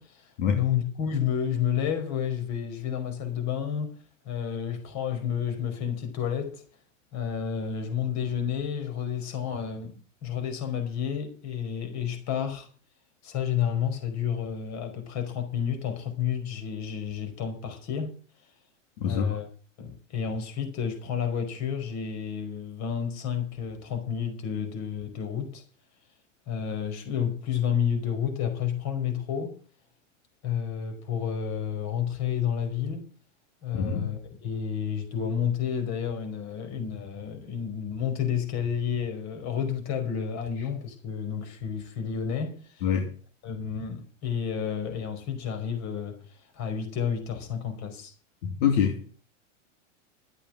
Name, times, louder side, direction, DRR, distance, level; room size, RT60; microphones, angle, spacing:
voice 1, 0.0-4.0 4.2-6.6 7.1-9.9 10.2-12.7 13.2-18.1 19.0-19.5 19.8-25.6 26.5-29.6 30.4-33.1 33.6-42.8 43.4-46.2 46.5-48.1, left 8 dB, 45° left, 5.1 m, -30 dB
voice 2, 19.0-19.4 33.7-34.1 42.8-43.1 48.4-49.1, left 7 dB, 70° left, 3.1 m, -25 dB
13.0 x 8.6 x 7.5 m
hypercardioid pair, 120°, 38 cm